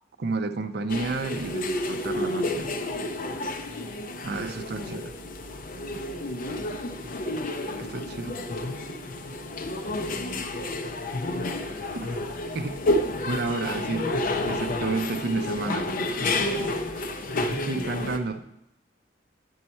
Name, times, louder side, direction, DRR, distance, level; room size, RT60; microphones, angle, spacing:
voice 1, 0.2-2.7 4.2-5.0 7.8-8.4 11.8-12.2 12.5-16.7 17.4-18.4, right 3 dB, 60° right, 7 dB, 0.6 m, -31 dB
sound 1, 0.9-18.2, left 2 dB, 45° left, 0.6 m, -30 dB
voice 2, 3.0-3.6 4.3-5.0 5.7-6.3 7.6-7.9 8.3-8.7 9.7-10.9 16.1-16.6 17.4-18.1, right 1 dB, 65° left, -4 dB, 1.8 m, -44 dB
9.2 x 5.5 x 4.3 m, 0.84 s
head